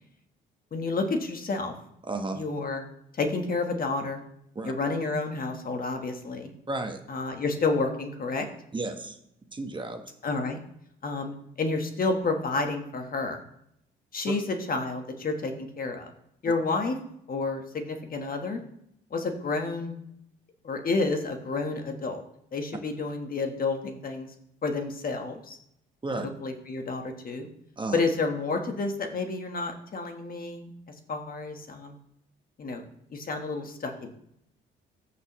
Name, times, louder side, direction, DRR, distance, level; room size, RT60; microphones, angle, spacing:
voice 1, 0.7-1.7 2.3-2.8 3.2-4.2 4.6-6.5 7.1-8.4 10.2-10.6 11.0-13.4 14.1-16.1 16.4-17.0 17.3-18.6 19.1-19.9 20.6-22.2 22.5-24.3 24.6-25.5 26.2-27.5 27.9-30.7 31.1-32.0 32.6-32.8 33.1-34.1, left 3 dB, 45° left, 5 dB, 1.4 m, -30 dB
voice 2, 2.0-2.4 4.5-4.7 6.7-7.0 8.7-9.2 9.5-10.0 26.0-26.3 27.8-28.0, right 2 dB, 25° right, 5 dB, 1.1 m, -32 dB
14.0 x 6.2 x 3.1 m, 0.75 s
cardioid pair, 90°, 20 cm